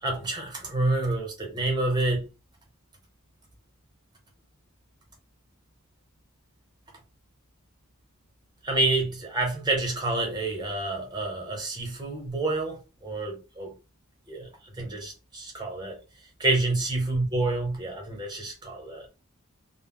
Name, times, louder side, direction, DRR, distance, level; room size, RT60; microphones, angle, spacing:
voice 1, 0.0-2.3 8.6-13.7 14.3-14.5 14.8-16.0 16.4-19.1, right 2 dB, 20° right, 1.0 m, -28 dB
2.2 x 2.1 x 3.7 m
head